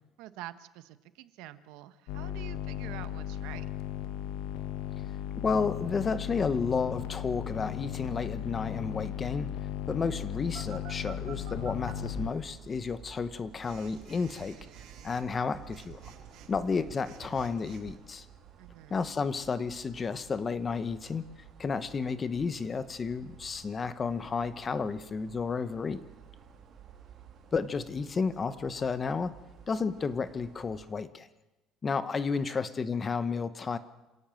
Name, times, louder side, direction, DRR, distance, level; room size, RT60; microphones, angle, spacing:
voice 1, 0.2-3.7 18.6-19.0 32.5-32.6, right 15 dB, 75° right, 12 dB, 1.2 m, -47 dB
sound 1, 2.1-12.3, left 10 dB, 75° left, 1.5 m, -36 dB
voice 2, 5.4-9.5 9.9-14.6 15.0-16.1 16.5-18.2 18.9-21.3 21.6-26.0 27.5-29.3 29.7-31.3 31.8-33.8, left 5 dB, 20° left, 13 dB, 0.9 m, -32 dB
Telephone, 10.5-11.9 13.6-18.0, right 10 dB, 55° right, 3.0 m, -49 dB
sound 2, 11.1-30.9, right 7 dB, 35° right, 2.9 m, -52 dB
26.0 x 17.5 x 7.7 m, 1.1 s
cardioid pair, 170°, 0 cm